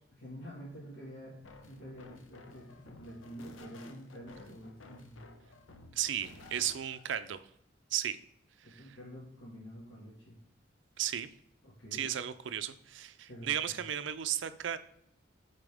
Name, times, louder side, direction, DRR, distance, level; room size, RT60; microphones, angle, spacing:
voice 1, 0.1-1.4 1.6-5.3 8.6-10.4 11.6-12.1 13.3-13.9, equal, 70° left, -8 dB, 1.9 m, -48 dB
sound 1, 1.4-7.1, left 2 dB, 90° left, 0.7 m, -54 dB
voice 2, 5.9-7.4 7.9-8.2 11.0-11.3 11.9-14.8, right 10 dB, 75° right, 12 dB, 0.4 m, -34 dB
8.6 x 4.1 x 3.5 m, 0.71 s
head